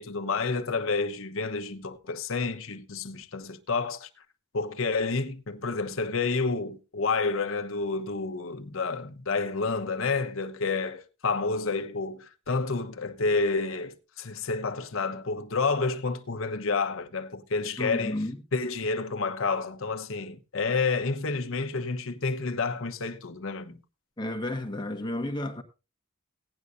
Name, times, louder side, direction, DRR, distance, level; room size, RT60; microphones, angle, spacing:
voice 1, 0.0-4.1 4.5-18.2 18.5-23.8, left 4 dB, 70° left, 1.0 m, -29 dB
voice 2, 17.8-18.4 24.2-25.6, left 1 dB, 20° left, 1.4 m, -32 dB
17.0 x 9.6 x 2.6 m
head